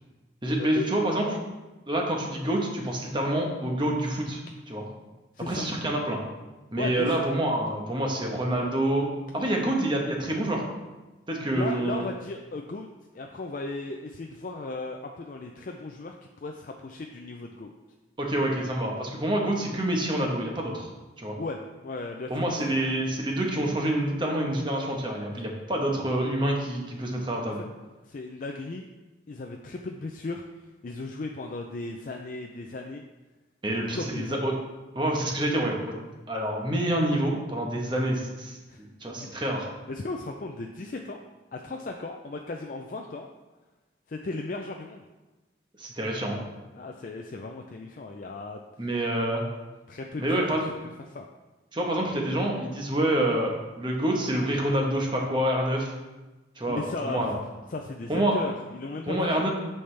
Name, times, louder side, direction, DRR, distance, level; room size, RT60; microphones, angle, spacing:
voice 1, 0.4-1.3 1.9-4.4 4.7-4.9 5.4-6.2 6.7-9.1 9.3-10.6 11.3-12.0 18.2-20.9 21.2-21.4 22.3-27.6 33.6-34.5 34.9-35.9 36.3-39.7 45.8-46.4 48.8-49.4 50.2-50.7 51.7-55.9 56.6-57.4 58.1-58.4 59.1-59.5, right 1 dB, 25° right, 0 dB, 1.1 m, -27 dB
voice 2, 5.3-5.7 6.8-7.2 11.5-12.9 13.1-17.7 21.4-22.6 28.0-28.9 29.3-30.4 30.8-33.0 33.7-34.4 38.7-38.8 39.9-41.2 41.5-43.3 44.1-45.0 46.7-48.9 49.9-50.5 51.1-51.3 56.7-57.4 57.7-59.5, left 2 dB, 45° left, 2 dB, 0.4 m, -36 dB
8.7 x 5.6 x 3.3 m, 1.1 s
head